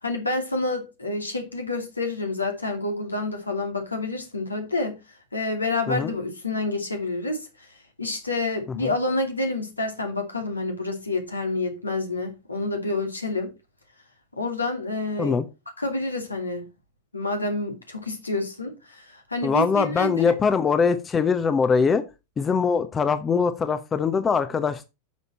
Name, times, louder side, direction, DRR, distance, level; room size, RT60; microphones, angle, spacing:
voice 1, 0.0-5.0 5.3-7.5 8.0-13.5 14.4-15.4 15.8-16.6 17.1-20.4, left 2 dB, 80° left, 2.6 m, -28 dB
voice 2, 19.4-22.0 22.4-24.9, left 5 dB, 20° left, 0.9 m, -22 dB
9.6 x 6.8 x 4.2 m
figure-of-eight pair, 90°, 0 cm